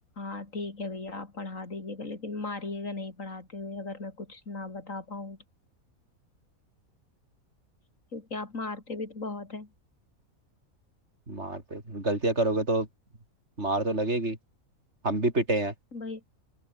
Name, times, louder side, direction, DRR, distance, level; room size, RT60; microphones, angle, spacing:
voice 1, 0.2-5.4 8.1-9.7 15.9-16.2, left 3 dB, 60° left, 4.0 m, -37 dB
voice 2, 11.3-12.9 13.6-14.4 15.0-15.7, right 2 dB, 50° right, 4.9 m, -27 dB
open air
omnidirectional pair, 1.5 m